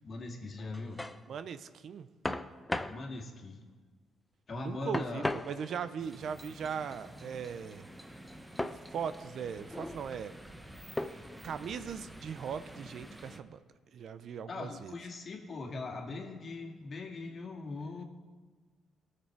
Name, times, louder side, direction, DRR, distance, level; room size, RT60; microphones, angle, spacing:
voice 1, 0.0-1.0 2.9-3.6 4.5-5.3 14.5-18.0, left 3 dB, 45° left, 1 dB, 2.0 m, -40 dB
sound 1, 0.6-1.2 2.2-3.0 4.9-6.0 8.6-8.8 9.6-10.0 11.0-11.4, left 1 dB, 10° left, 0.5 m, -36 dB
voice 2, 1.3-2.1 4.5-7.9 8.9-10.4 11.0-13.6 13.9-14.9, right 7 dB, 65° right, 12 dB, 0.5 m, -39 dB
sound 2, 6.0-13.4, right 1 dB, 5° right, 0.9 m, -50 dB
18.0 x 6.8 x 4.6 m, 1.4 s
cardioid pair, 90°, 0 cm